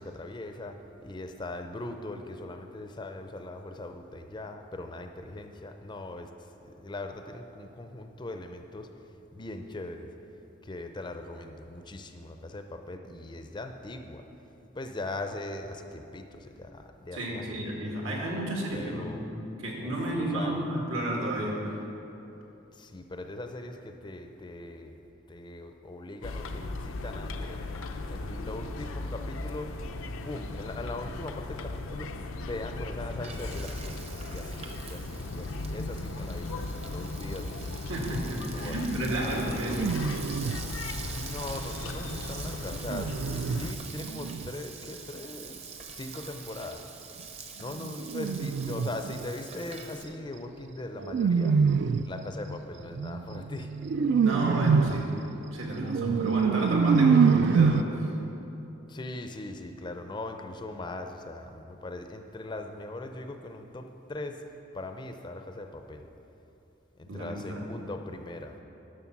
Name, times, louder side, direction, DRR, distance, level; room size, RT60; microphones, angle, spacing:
voice 1, 0.0-6.3 6.6-8.9 9.3-10.1 10.6-14.2 14.7-17.6 18.7-19.2 19.8-20.7 22.7-25.0 25.3-27.7 28.0-29.7 30.2-32.1 32.5-34.0 34.3-37.9 38.5-38.8 41.0-45.7 45.9-46.9 47.6-51.6 52.0-53.7 56.3-56.8 58.9-64.4 64.7-66.1 67.0-68.7, left 2 dB, 20° left, 6 dB, 0.5 m, -40 dB
voice 2, 17.1-19.4 19.6-21.8 37.9-39.9 54.2-55.1 55.5-58.1 67.1-67.7, right 1 dB, 80° right, -2 dB, 2.1 m, -32 dB
sound 1, 26.2-43.7, left 2 dB, 90° left, 0.6 m, -37 dB
Frying (food), 32.8-50.0, right 5 dB, 30° right, 0.7 m, -45 dB
sound 2, 38.5-39.1 39.6-40.7 42.1-44.5 47.8-49.3 51.0-52.2 52.9-57.8, right 5 dB, 55° right, 0.3 m, -26 dB
11.0 x 6.4 x 5.9 m, 3.0 s
head